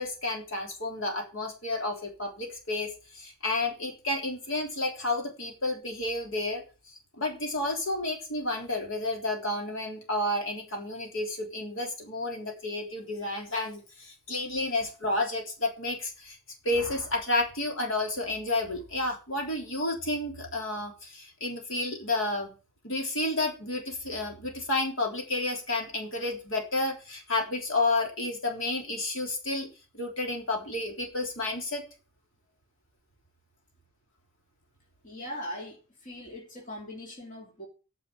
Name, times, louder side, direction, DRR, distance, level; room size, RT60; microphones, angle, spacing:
voice 1, 0.0-16.4 16.6-22.5 22.8-29.7 29.9-31.8, left 2 dB, 60° left, 2 dB, 3.6 m, -31 dB
voice 2, 35.0-37.7, left 1 dB, 35° left, -1 dB, 3.0 m, -40 dB
9.7 x 6.3 x 8.6 m, 0.33 s
head